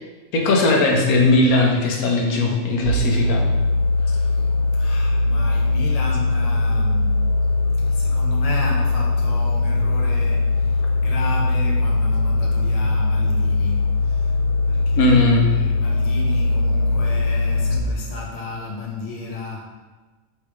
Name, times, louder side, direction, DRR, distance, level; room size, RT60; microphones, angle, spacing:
voice 1, 0.3-3.4 15.0-15.5, left 2 dB, 85° left, 0 dB, 1.2 m, -18 dB
sound 1, 2.8-17.8, left 3 dB, 85° right, 1.1 m, -20 dB
voice 2, 4.0-4.5 4.7-7.2 7.9-14.3 14.6-19.6, left 3 dB, 35° left, -3 dB, 0.7 m, -33 dB
3.2 x 3.2 x 4.7 m, 1.3 s
omnidirectional pair, 1.5 m